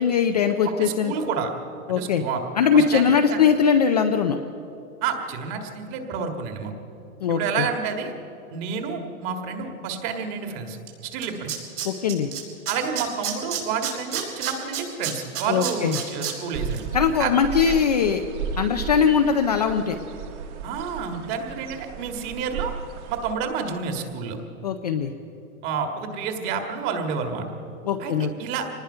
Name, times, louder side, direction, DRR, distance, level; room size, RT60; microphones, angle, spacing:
voice 1, 0.0-1.1 1.9-2.2 2.6-4.4 7.2-7.7 11.8-12.3 15.5-16.0 16.9-18.2 18.6-20.0 24.6-25.1 27.9-28.3, left 7 dB, 30° left, 5 dB, 0.4 m, -21 dB
voice 2, 0.6-1.5 1.9-2.4 2.7-3.4 5.0-6.7 7.3-8.1 8.5-10.8 11.0-11.5 12.7-16.8 17.2-17.3 17.6-17.7 20.6-22.7 23.1-24.4 25.6-27.5 28.0-28.7, right 6 dB, 30° right, 5 dB, 1.8 m, -29 dB
Tools, 10.9-11.0 11.2-12.4 12.7-16.3 16.7-16.8, right 11 dB, 75° right, 5.3 m, -29 dB
sound 1, 16.5-23.3, right 7 dB, 50° right, 1.7 m, -34 dB
25.0 x 19.5 x 5.6 m, 2.9 s
hypercardioid pair, 160°, 45 cm